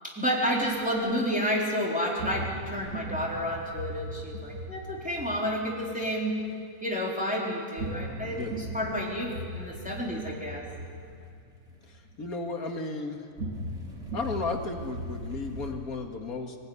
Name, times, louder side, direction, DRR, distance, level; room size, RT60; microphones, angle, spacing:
voice 1, 0.0-6.4 6.8-10.6, equal, 5° right, -3 dB, 3.9 m, -30 dB
sound 1, 0.6-1.2 2.2-6.5 7.8-12.4 13.4-15.7, right 1 dB, 75° right, 3.3 m, -39 dB
voice 2, 8.2-8.6 11.9-13.2 14.1-16.6, left 3 dB, 85° left, 4 dB, 2.5 m, -34 dB
24.5 x 19.0 x 9.7 m, 2.5 s
omnidirectional pair, 1.5 m